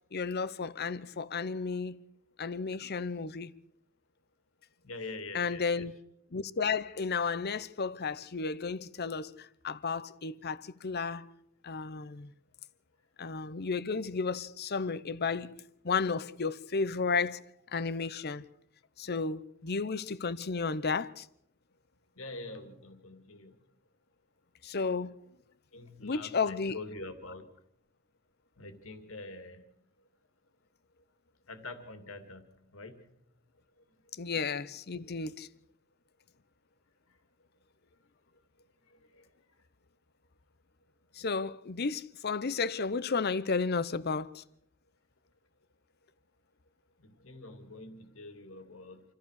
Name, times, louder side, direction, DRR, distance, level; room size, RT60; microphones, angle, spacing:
voice 1, 0.1-2.0 2.4-3.5 5.3-5.9 6.3-11.3 11.6-12.3 13.2-15.5 15.8-17.4 17.7-18.4 19.0-21.3 24.6-25.1 26.0-26.8 34.2-35.5 41.2-44.4, left 4 dB, 50° left, 0.8 m, -33 dB
voice 2, 4.8-5.9 22.2-23.5 25.7-27.4 28.6-29.6 31.5-32.4 32.7-33.0 39.1-39.2 47.0-49.0, left 2 dB, 70° left, 2.6 m, -45 dB
27.5 x 14.5 x 6.5 m
head